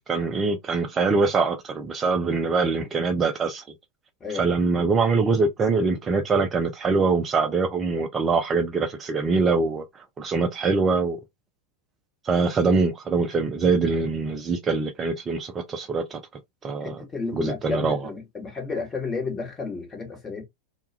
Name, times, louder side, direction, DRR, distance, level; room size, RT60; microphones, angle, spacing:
voice 1, 0.0-3.6 4.3-9.8 10.2-11.2 12.2-16.2 16.6-17.0 17.3-18.0, right 4 dB, 20° right, 0.4 m, -23 dB
voice 2, 4.2-4.8 16.8-20.4, left 4 dB, 20° left, 1.0 m, -32 dB
2.2 x 2.1 x 2.6 m
figure-of-eight pair, 90°, 0 cm